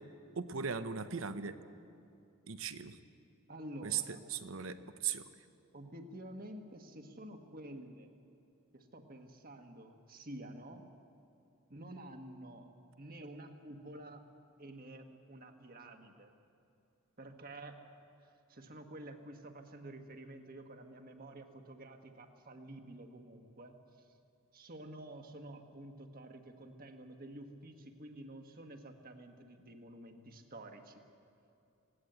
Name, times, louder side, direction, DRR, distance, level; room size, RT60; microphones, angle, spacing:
voice 1, 0.4-1.6 2.5-3.0 3.8-4.0 4.3-5.2, right 7 dB, 70° right, 11 dB, 0.9 m, -38 dB
voice 2, 3.5-4.3 5.7-8.1 8.7-10.9 11.7-12.7 13.0-14.2 14.6-16.3 17.2-17.8 18.5-23.8 24.5-31.0, right 1 dB, 45° right, 5 dB, 1.5 m, -50 dB
20.5 x 16.5 x 8.0 m, 2.6 s
head